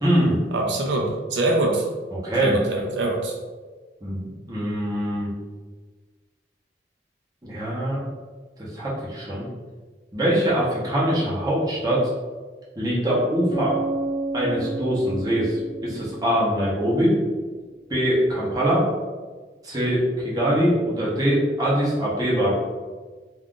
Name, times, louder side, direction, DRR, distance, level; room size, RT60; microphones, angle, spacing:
voice 1, 0.0-0.4 2.1-2.6 4.0-5.3 7.4-8.0 8.6-9.5 10.1-12.1 12.8-13.7 14.3-17.2 17.9-18.9 19.6-22.5, equal, 20° right, -7 dB, 0.8 m, -23 dB
voice 2, 0.5-1.9 2.4-3.3, right 2 dB, 85° right, 0 dB, 0.5 m, -24 dB
Bass guitar, 13.5-17.2, right 2 dB, 45° left, 0.8 m, -31 dB
2.4 x 2.4 x 3.6 m, 1.4 s
head